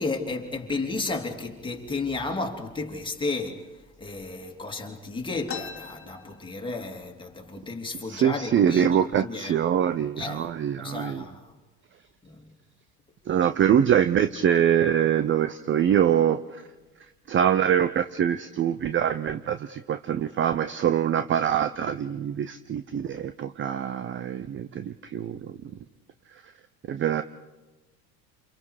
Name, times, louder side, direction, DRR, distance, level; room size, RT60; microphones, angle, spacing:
voice 1, 0.0-3.6 4.0-8.9 9.2-9.6 10.2-10.5 10.8-11.4 12.2-12.4, left 3 dB, 10° left, 3.0 m, -32 dB
sound 1, 5.5-7.1 7.4-7.5 7.8-8.4 9.0-9.1 9.8-10.0 10.5-10.9, left 7 dB, 25° left, 2.3 m, -41 dB
voice 2, 8.0-11.3 13.3-16.4 17.3-25.5 26.9-27.2, right 9 dB, 25° right, 0.7 m, -24 dB
29.0 x 28.0 x 4.9 m
figure-of-eight pair, 75°, 49 cm